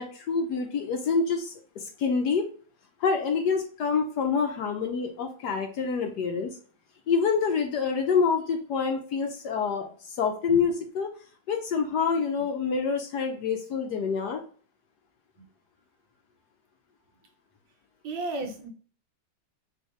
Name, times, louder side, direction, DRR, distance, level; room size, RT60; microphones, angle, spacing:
voice 1, 0.0-2.5 3.0-6.6 7.1-11.1 11.5-14.4, left 5 dB, 65° left, 4 dB, 1.1 m, -27 dB
voice 2, 18.0-18.7, right 2 dB, 75° right, 2 dB, 1.7 m, -33 dB
4.5 x 2.8 x 3.1 m, 0.42 s
omnidirectional pair, 2.2 m